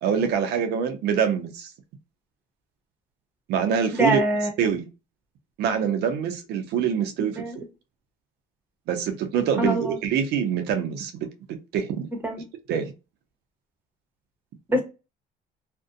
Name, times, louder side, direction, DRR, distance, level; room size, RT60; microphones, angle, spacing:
voice 1, 0.0-1.7 3.5-4.2 4.6-4.9 5.6-7.6 8.9-11.3 11.7-12.1 12.7-12.9, right 7 dB, 75° right, 0.5 m, -25 dB
voice 2, 3.9-4.5 7.4-7.6 9.6-10.0 12.2-12.4 14.7-14.8, right 1 dB, 10° right, 0.8 m, -24 dB
2.6 x 2.1 x 2.4 m
cardioid pair, 110°, 17 cm